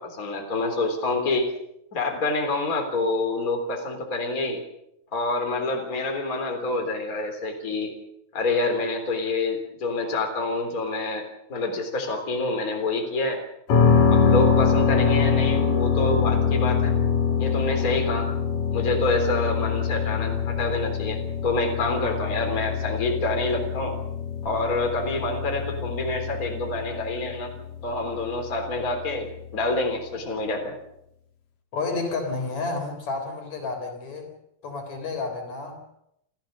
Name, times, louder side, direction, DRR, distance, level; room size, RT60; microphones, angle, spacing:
voice 1, 0.0-1.5 1.9-4.6 5.1-7.9 8.3-11.2 11.5-13.4 14.1-16.9 17.4-18.3 18.7-24.0 24.4-27.5 27.8-30.7, left 2 dB, 25° left, 3 dB, 3.7 m, -27 dB
sound 1, 13.7-29.5, left 6 dB, 65° left, 4.4 m, -24 dB
voice 2, 31.7-34.3 34.6-36.0, left 3 dB, 50° left, 4 dB, 4.9 m, -31 dB
29.0 x 15.5 x 6.7 m, 0.80 s
omnidirectional pair, 4.1 m